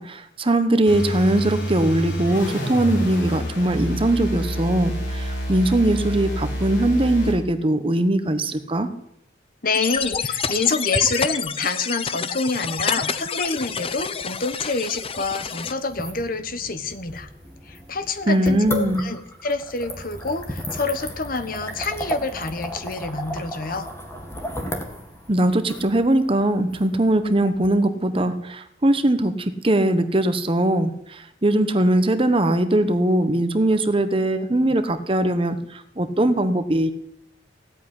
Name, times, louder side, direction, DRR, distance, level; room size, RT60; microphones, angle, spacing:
voice 1, 0.0-8.9 18.3-19.1 25.3-36.9, right 1 dB, 30° right, 10 dB, 1.1 m, -21 dB
sound 1, 0.9-7.4, equal, 85° left, 3.7 m, -28 dB
voice 2, 9.6-17.3 17.7-23.9, left 4 dB, 50° left, 11 dB, 1.2 m, -27 dB
sound 2, 9.7-15.7, left 6 dB, 30° left, 0.7 m, -28 dB
sound 3, 15.8-27.7, equal, 15° left, 2.0 m, -35 dB
16.5 x 8.5 x 9.9 m, 0.76 s
head